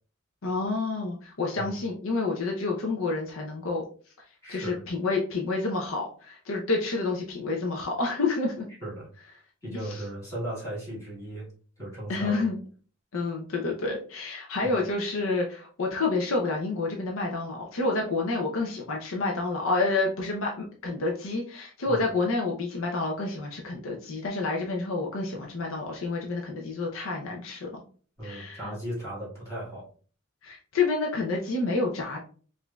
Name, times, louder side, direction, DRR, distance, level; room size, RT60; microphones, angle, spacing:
voice 1, 0.4-3.8 4.5-8.7 9.7-10.0 12.1-12.6 13.1-27.8 28.2-28.7 30.4-32.2, left 3 dB, 80° left, 0 dB, 0.6 m, -29 dB
voice 2, 4.4-4.8 8.8-9.1 9.6-11.5 11.8-12.4 14.6-14.8 21.8-22.1 28.2-29.9, right 1 dB, 15° left, -8 dB, 1.9 m, -36 dB
4.9 x 2.6 x 2.3 m, 0.42 s
head